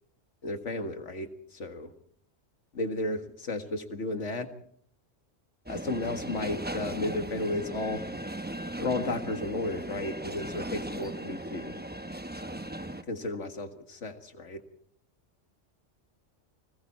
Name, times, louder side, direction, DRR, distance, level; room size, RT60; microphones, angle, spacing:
voice 1, 0.4-1.9 2.7-4.5 5.7-8.0 8.8-11.8 13.0-14.6, left 2 dB, 70° left, 7 dB, 2.1 m, -33 dB
sound 1, 5.7-13.0, right 1 dB, 10° right, 0.8 m, -37 dB
29.5 x 21.0 x 4.3 m, 0.65 s
omnidirectional pair, 1.3 m